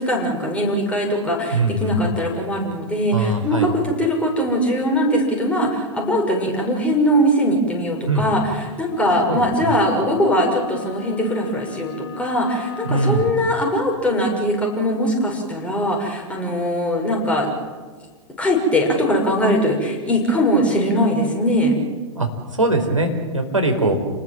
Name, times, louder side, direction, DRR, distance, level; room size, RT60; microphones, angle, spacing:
voice 1, 0.0-17.5 18.4-21.8, equal, 5° left, 0 dB, 6.4 m, -21 dB
voice 2, 1.5-2.1 3.1-3.7 8.1-8.3 9.3-9.7 12.8-13.3 22.1-24.0, right 2 dB, 85° right, 3 dB, 4.5 m, -21 dB
sound 1, 8.9-13.5, left 5 dB, 50° left, 4.6 m, -35 dB
28.5 x 20.0 x 7.7 m, 1.4 s
figure-of-eight pair, 105°, 16 cm